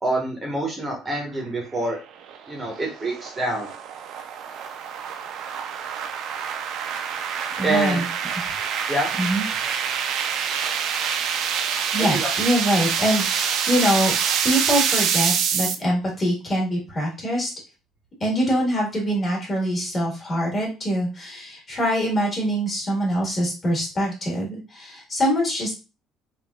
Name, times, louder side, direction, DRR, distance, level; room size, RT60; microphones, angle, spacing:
voice 1, 0.0-2.0 2.5-3.7 7.6-8.0 8.9-9.1 12.0-12.3, right 1 dB, 15° right, 0 dB, 0.7 m, -26 dB
sound 1, 1.8-15.7, right 7 dB, 65° right, 0.4 m, -26 dB
voice 2, 7.6-8.0 8.3-8.6 9.2-9.9 10.4-10.5 11.9-14.1 14.4-17.5 18.2-25.7, equal, 30° left, -3 dB, 1.4 m, -24 dB
3.3 x 2.3 x 2.3 m, 0.30 s
cardioid pair, 130°, 0 cm